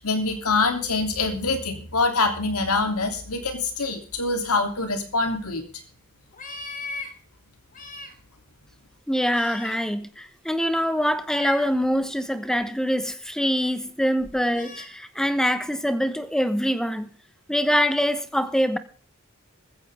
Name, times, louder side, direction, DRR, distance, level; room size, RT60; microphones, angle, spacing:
voice 1, 0.0-5.6, left 3 dB, 85° left, 3.2 m, -25 dB
sound 1, 6.3-7.1 7.7-8.1 9.3-9.8 11.2-12.0 12.6-12.7 14.2-14.9, left 4 dB, 40° left, 2.8 m, -37 dB
voice 2, 9.1-17.1 17.5-18.8, equal, 5° left, 1.0 m, -24 dB
15.0 x 14.5 x 3.7 m
head